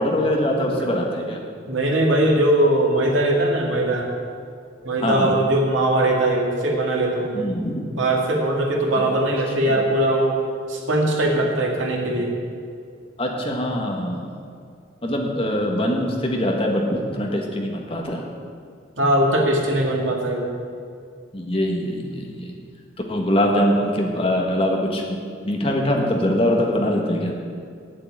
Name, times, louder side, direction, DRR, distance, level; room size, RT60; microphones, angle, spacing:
voice 1, 0.0-1.4 5.0-5.3 7.3-7.8 9.7-9.8 13.2-14.3 15.0-18.2 21.3-22.5 23.1-25.2 25.4-27.3, left 1 dB, 30° left, 1 dB, 1.4 m, -23 dB
voice 2, 0.5-0.9 1.7-4.1 4.8-7.5 8.0-10.4 10.7-12.3 19.0-20.5, right 1 dB, 85° right, 0 dB, 2.2 m, -20 dB
9.0 x 7.7 x 8.8 m, 2.2 s
head